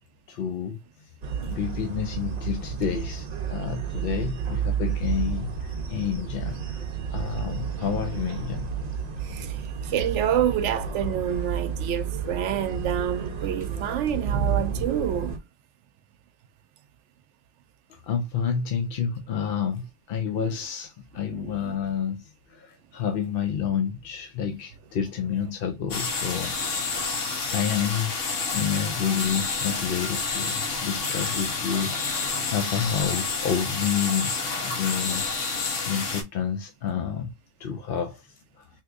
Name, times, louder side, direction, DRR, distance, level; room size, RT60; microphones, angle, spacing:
voice 1, 0.3-1.1 1.4-6.8 7.1-8.7 17.9-26.5 26.9-28.2 28.5-37.3 37.6-38.7, left 7 dB, 60° left, 0.6 m, -29 dB
sound 1, 1.2-15.4, right 7 dB, 45° right, 0.6 m, -31 dB
voice 2, 9.2-9.6 9.8-15.4 20.4-20.5 21.3-21.5, right 9 dB, 75° right, 0.9 m, -28 dB
sound 2, 25.9-36.2, left 4 dB, 85° left, 1.3 m, -29 dB
3.5 x 2.9 x 2.4 m
omnidirectional pair, 1.2 m